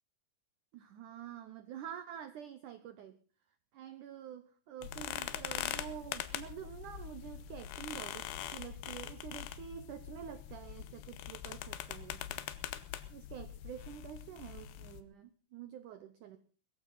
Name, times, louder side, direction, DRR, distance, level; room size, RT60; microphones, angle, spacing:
voice 1, 0.7-3.2 3.7-12.4 13.1-16.4, right 9 dB, 85° right, 11 dB, 1.7 m, -48 dB
sound 1, 4.8-15.0, left 12 dB, 75° left, 3.0 m, -43 dB
20.5 x 15.0 x 4.0 m, 0.38 s
omnidirectional pair, 5.1 m